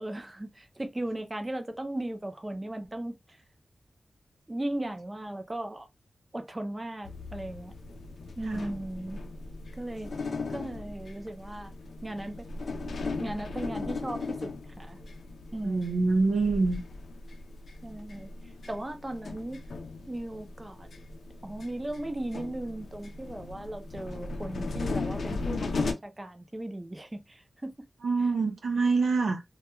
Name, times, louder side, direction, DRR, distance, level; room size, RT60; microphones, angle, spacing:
voice 1, 0.0-3.4 4.5-5.9 6.3-7.7 8.4-9.2 9.7-10.1 10.5-11.7 12.0-12.5 13.2-15.0 15.5-16.2 17.8-19.6 20.1-20.9 21.4-27.9, right 1 dB, 20° right, 0.5 m, -37 dB
sound 1, 7.0-25.9, left 3 dB, 80° left, 0.5 m, -37 dB
voice 2, 15.6-16.8 28.0-29.4, right 3 dB, 90° right, 0.6 m, -26 dB
2.2 x 2.2 x 3.0 m
wide cardioid pair, 95°, 0 cm